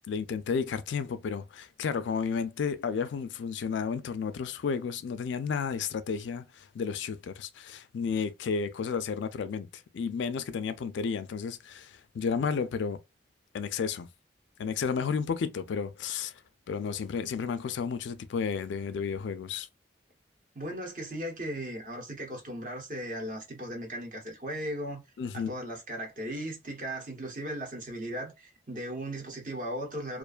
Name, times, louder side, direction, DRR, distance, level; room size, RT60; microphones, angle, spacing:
voice 1, 0.1-13.0 13.5-14.1 14.6-16.3 16.7-19.7 25.2-25.6, left 6 dB, 75° left, 0.3 m, -32 dB
voice 2, 20.5-25.0 25.3-30.2, right 1 dB, 45° right, 0.9 m, -37 dB
2.4 x 2.2 x 2.3 m
head